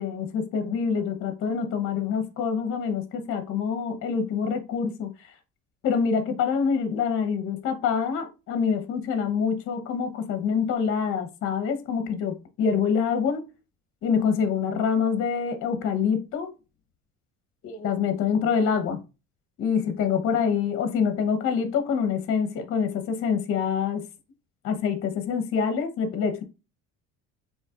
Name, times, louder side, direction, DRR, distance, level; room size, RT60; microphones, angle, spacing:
voice 1, 0.0-5.1 5.8-13.5 14.0-16.5 17.6-19.0 19.6-24.0 24.6-26.4, left 6 dB, 45° left, 1.0 m, -26 dB
7.2 x 3.0 x 2.5 m
cardioid pair, 155°, 29 cm